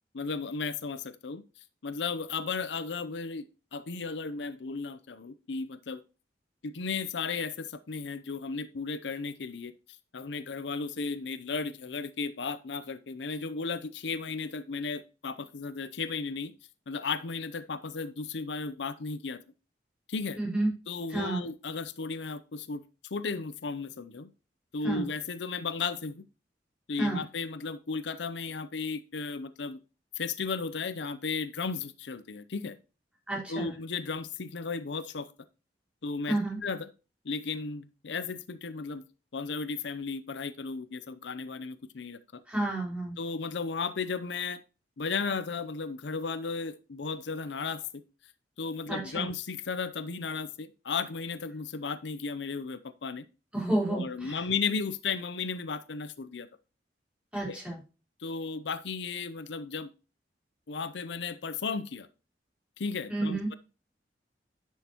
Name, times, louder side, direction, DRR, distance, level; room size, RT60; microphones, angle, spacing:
voice 1, 0.1-1.4 1.8-3.5 3.7-6.0 6.6-9.7 10.1-16.5 16.9-19.4 20.1-20.4 20.9-22.8 23.1-24.3 24.7-26.2 26.9-29.8 30.2-32.8 33.5-35.3 36.0-36.9 37.2-39.0 39.3-42.4 43.2-44.6 45.0-48.0 48.6-53.3 53.9-56.5 57.5-57.6 58.2-59.9 60.7-62.1 62.8-63.5, left 4 dB, 80° left, 13 dB, 0.6 m, -35 dB
voice 2, 20.4-20.7 21.1-21.4 24.8-25.1 27.0-27.2 33.3-33.7 36.3-36.6 42.5-43.2 48.9-49.3 53.5-54.4 57.3-57.8 63.1-63.5, right 2 dB, 5° right, -3 dB, 3.9 m, -30 dB
10.0 x 6.3 x 2.9 m, 0.32 s
head